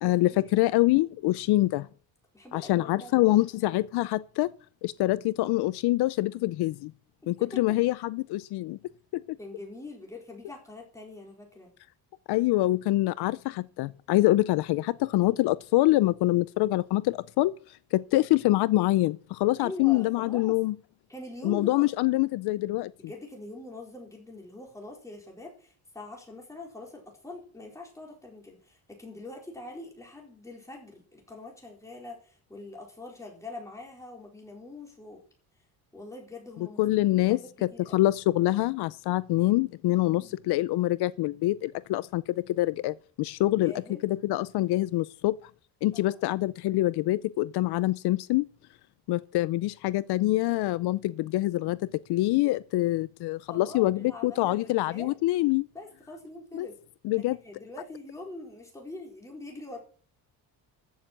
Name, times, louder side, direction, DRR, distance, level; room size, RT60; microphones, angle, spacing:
voice 1, 0.0-1.9 2.5-4.5 4.8-6.9 7.3-8.8 9.1-9.4 12.3-17.5 17.9-20.7 21.4-22.9 36.8-43.7 44.0-45.4 45.8-48.5 49.1-51.8 52.1-55.7 56.5-56.7 57.0-57.4, left 17 dB, 80° left, 0.6 m, -25 dB
voice 2, 2.3-3.4 7.2-7.8 9.4-11.7 19.6-20.6 21.1-21.9 23.0-35.2 35.9-36.8 37.1-38.1 40.0-40.3 43.4-44.0 45.9-46.2 53.5-55.1 55.7-56.7 57.1-59.8, left 2 dB, 10° left, 4.2 m, -44 dB
14.5 x 7.2 x 7.3 m
cardioid pair, 175°, 38 cm